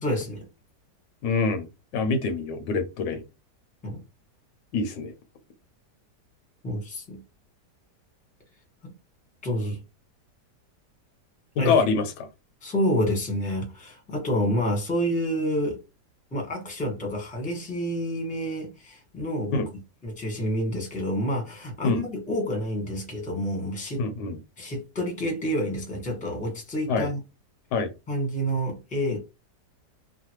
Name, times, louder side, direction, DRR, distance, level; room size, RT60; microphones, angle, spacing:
voice 1, 0.0-0.4 3.8-4.0 6.6-7.2 8.8-8.9 9.4-9.8 11.6-11.7 12.6-15.8 16.3-19.7 20.0-24.1 24.6-27.2 28.1-29.2, equal, 5° left, 0.9 m, -28 dB
voice 2, 1.2-1.7 1.9-3.2 4.7-5.1 11.6-12.3 19.5-19.7 21.8-22.0 24.0-24.4 26.9-27.1 27.7-27.9, left 4 dB, 80° left, 1.3 m, -25 dB
3.2 x 2.2 x 2.9 m
omnidirectional pair, 1.8 m